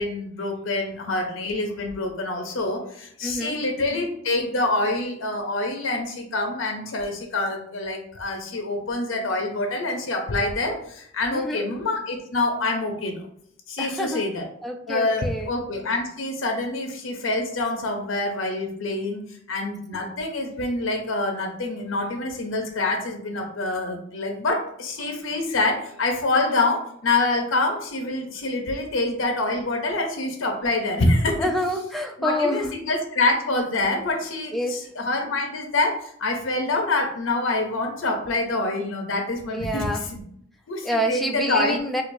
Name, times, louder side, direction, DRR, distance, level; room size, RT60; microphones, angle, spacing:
voice 1, 0.0-13.3 13.7-14.4 14.9-19.2 19.5-31.5 32.2-40.2 40.7-41.8, left 2 dB, 80° left, 3 dB, 0.6 m, -26 dB
voice 2, 3.2-3.6 11.3-11.7 13.8-14.2 14.6-15.5 31.4-32.7 34.5-34.9 39.5-40.0 40.8-42.0, equal, ahead, 2 dB, 0.3 m, -27 dB
4.5 x 2.4 x 2.6 m, 0.69 s
head